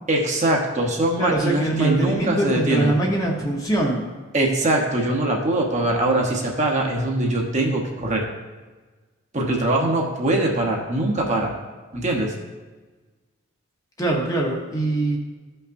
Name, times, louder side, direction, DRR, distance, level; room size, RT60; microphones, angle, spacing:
voice 1, 0.1-2.9 4.3-8.3 9.3-11.5 11.9-12.3, right 1 dB, 30° right, 0 dB, 1.0 m, -22 dB
voice 2, 1.2-4.0 14.0-15.2, right 2 dB, 15° left, -1 dB, 0.9 m, -23 dB
14.0 x 5.5 x 2.6 m, 1.3 s
head